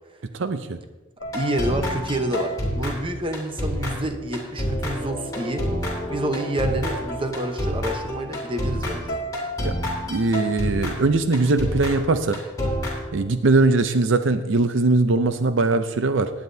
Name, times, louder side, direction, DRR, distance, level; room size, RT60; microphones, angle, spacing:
voice 1, 0.3-0.8 9.6-12.4 13.1-16.3, right 3 dB, 65° right, 9 dB, 0.6 m, -21 dB
sound 1, 1.2-13.5, equal, 15° left, 3.0 m, -29 dB
voice 2, 1.3-5.7 6.1-9.2, right 1 dB, 25° right, 6 dB, 0.9 m, -28 dB
18.0 x 9.5 x 2.7 m, 1.2 s
head